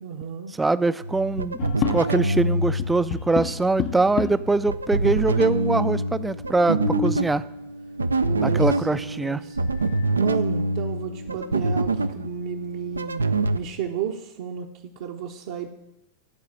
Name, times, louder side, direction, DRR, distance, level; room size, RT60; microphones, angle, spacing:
voice 1, 0.0-0.5 8.2-9.7 10.2-13.2 13.5-15.7, right 8 dB, 55° right, 0 dB, 0.8 m, -32 dB
voice 2, 0.6-7.4 8.4-9.4, right 3 dB, 10° right, 15 dB, 0.4 m, -23 dB
sound 1, 1.0-13.6, right 2 dB, 75° right, 0.4 m, -26 dB
sound 2, 1.6-2.4 2.8-4.6 5.3-5.4 5.6-5.7 6.4-7.3 9.1-9.2 9.7-10.2 10.6-10.7 11.2-12.1, left 9 dB, 40° left, 0.6 m, -31 dB
13.5 x 4.8 x 8.2 m, 0.92 s
figure-of-eight pair, 90°, 0 cm